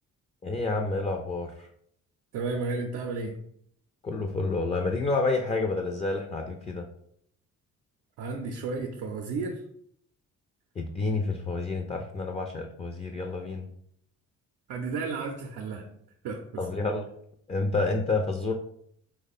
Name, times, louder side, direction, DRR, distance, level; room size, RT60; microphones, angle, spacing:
voice 1, 0.4-1.7 4.0-6.8 10.8-13.7 16.6-17.0 17.5-18.5, left 3 dB, 20° left, 3 dB, 0.3 m, -29 dB
voice 2, 2.3-3.4 8.2-9.6 14.7-15.9 16.2-16.7, right 3 dB, 90° right, 1 dB, 0.5 m, -33 dB
3.0 x 2.1 x 4.1 m, 0.69 s
cardioid pair, 90°, 30 cm